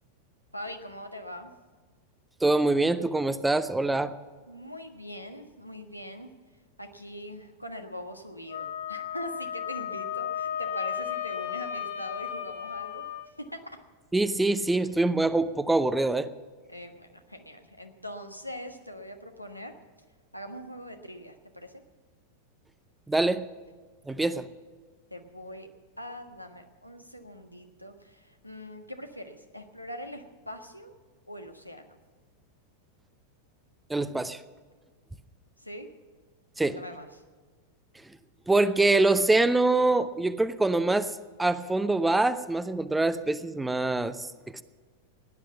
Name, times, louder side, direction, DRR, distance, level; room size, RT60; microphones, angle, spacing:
voice 1, 0.5-1.5 4.5-6.3 6.8-13.0 16.7-19.7 20.3-21.8 24.1-24.3 25.1-25.7 26.0-30.9 31.3-32.0 35.6-35.9 36.6-37.2, equal, 90° left, 4 dB, 1.5 m, -42 dB
voice 2, 2.4-4.1 14.1-16.3 23.1-23.5 24.1-24.5 33.9-34.4 36.6-36.8 38.5-41.1 41.4-44.3, right 2 dB, 5° right, 13 dB, 0.7 m, -24 dB
Wind instrument woodwind instrument, 8.5-13.3, left 9 dB, 65° left, 2.3 m, -34 dB
16.5 x 10.5 x 7.1 m, 1.5 s
figure-of-eight pair, 90°, 0 cm